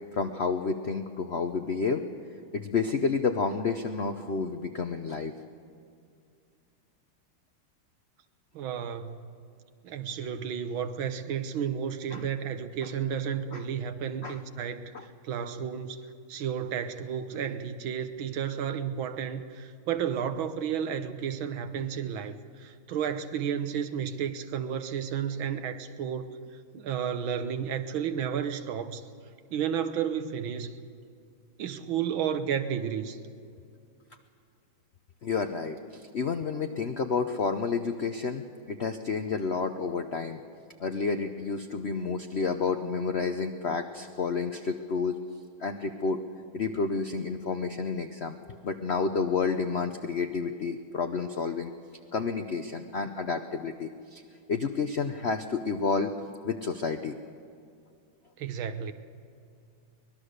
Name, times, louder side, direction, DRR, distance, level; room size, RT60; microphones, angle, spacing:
voice 1, 0.1-2.0 2.5-5.3 12.1-12.2 13.5-13.6 14.2-14.4 14.9-15.0 35.2-40.4 40.8-45.2 45.6-46.2 46.5-51.7 52.1-54.2 54.5-56.1 56.4-57.1, left 5 dB, 85° left, 0.5 m, -30 dB
voice 2, 8.5-9.3 9.8-14.9 15.2-26.3 26.7-29.0 29.5-30.8 31.6-33.2 58.4-58.9, right 8 dB, 70° right, 1.8 m, -32 dB
24.0 x 20.0 x 6.6 m
omnidirectional pair, 2.3 m